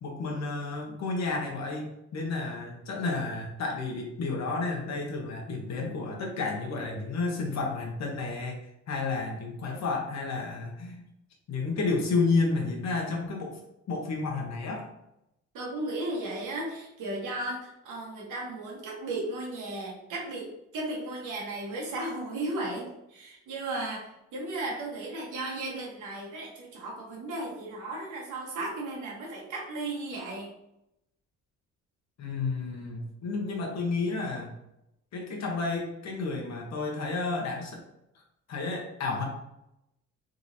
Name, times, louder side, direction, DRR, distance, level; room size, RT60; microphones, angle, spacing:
voice 1, 0.0-8.6 8.9-11.0 11.5-13.6 13.9-14.9 32.2-34.5 35.1-37.8 38.5-39.2, left 3 dB, 60° left, 1 dB, 1.0 m, -31 dB
voice 2, 15.5-30.5, right 2 dB, 85° right, -3 dB, 1.3 m, -35 dB
3.7 x 3.0 x 2.7 m, 0.83 s
cardioid pair, 90°, 30 cm